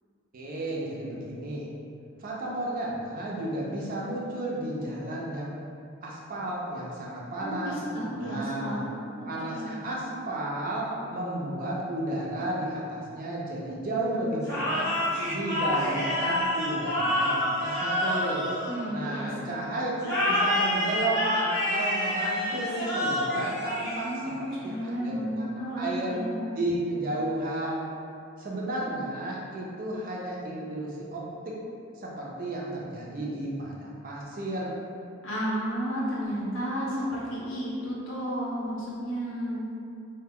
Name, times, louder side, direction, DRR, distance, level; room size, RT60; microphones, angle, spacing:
voice 1, 0.3-1.7 2.2-5.6 6.0-7.8 8.2-8.8 9.2-14.9 15.3-18.5 18.9-19.9 20.3-26.2 26.6-27.9 28.4-31.5 32.0-34.8, right 1 dB, 40° right, -4 dB, 0.4 m, -33 dB
voice 2, 7.4-9.8 18.7-19.5 24.0-26.5 35.2-39.6, equal, 60° left, -7 dB, 0.5 m, -32 dB
sound 1, 14.4-19.3 20.0-24.4, left 1 dB, 15° left, 0.6 m, -28 dB
2.1 x 2.1 x 3.5 m, 2.5 s
head